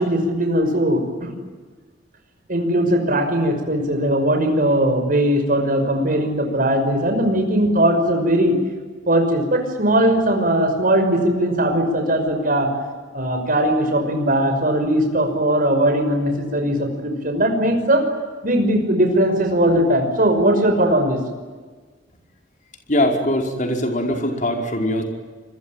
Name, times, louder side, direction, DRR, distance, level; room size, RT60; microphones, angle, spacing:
voice 1, 0.0-1.4 2.5-8.6 9.1-12.7 13.1-18.0 18.4-21.2, right 1 dB, 50° right, 6 dB, 5.7 m, -19 dB
voice 2, 22.9-25.0, left 1 dB, 45° left, 3 dB, 5.0 m, -21 dB
27.0 x 22.0 x 9.1 m, 1.4 s
head